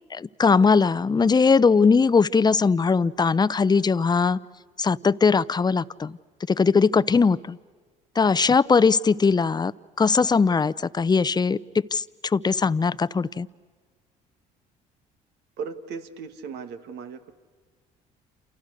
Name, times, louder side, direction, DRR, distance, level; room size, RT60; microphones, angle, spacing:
voice 1, 0.1-4.4 4.8-6.2 6.5-7.6 8.2-9.7 10.0-13.5, left 5 dB, 25° left, 17 dB, 0.7 m, -20 dB
voice 2, 15.6-17.3, right 6 dB, 75° right, 8 dB, 2.0 m, -37 dB
28.5 x 28.5 x 6.5 m, 1.5 s
supercardioid pair, 70°, 18 cm